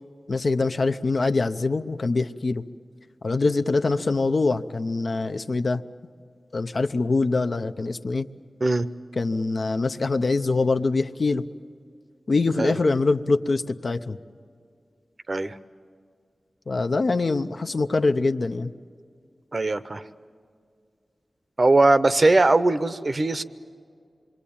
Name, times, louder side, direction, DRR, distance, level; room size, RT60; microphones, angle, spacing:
voice 1, 0.3-2.6 3.2-5.8 6.5-8.3 9.2-11.5 12.3-14.2 16.7-18.7, left 3 dB, 60° left, 8 dB, 0.7 m, -24 dB
voice 2, 19.5-20.0 21.6-23.4, right 2 dB, 45° right, 12 dB, 0.7 m, -20 dB
26.5 x 23.0 x 8.7 m, 2.2 s
wide cardioid pair, 80°, 0 cm